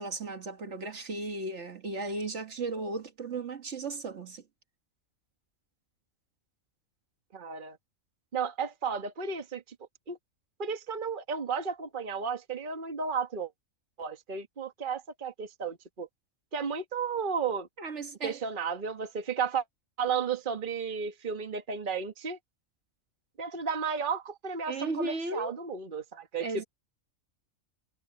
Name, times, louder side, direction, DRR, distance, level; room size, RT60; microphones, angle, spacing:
voice 1, 0.0-4.4 17.8-18.4 24.7-25.6 26.4-26.6, right 3 dB, 55° right, 1.8 m, -35 dB
voice 2, 7.3-7.8 8.3-9.6 10.1-10.2 10.6-13.5 14.0-16.1 16.5-17.7 18.2-19.6 20.0-22.4 23.4-26.6, right 6 dB, 40° right, 1.5 m, -33 dB
omnidirectional pair, 1.4 m